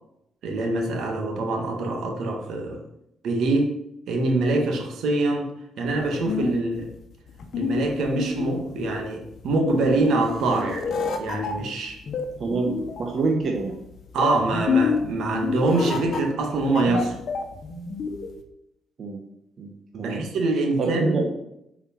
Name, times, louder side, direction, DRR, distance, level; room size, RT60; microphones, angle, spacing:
voice 1, 0.4-2.8 3.2-3.7 4.1-5.5 5.8-6.9 7.6-12.0 14.1-17.2 19.9-21.2, right 2 dB, 75° right, 2 dB, 1.9 m, -24 dB
sound 1, 5.9-18.4, left 5 dB, 60° left, 1.3 m, -29 dB
voice 2, 12.4-13.8 19.0-19.2 19.6-19.7 20.0-20.3 20.8-21.3, right 3 dB, 50° right, 0 dB, 1.4 m, -26 dB
7.2 x 5.0 x 5.9 m, 0.80 s
cardioid pair, 90°, 0 cm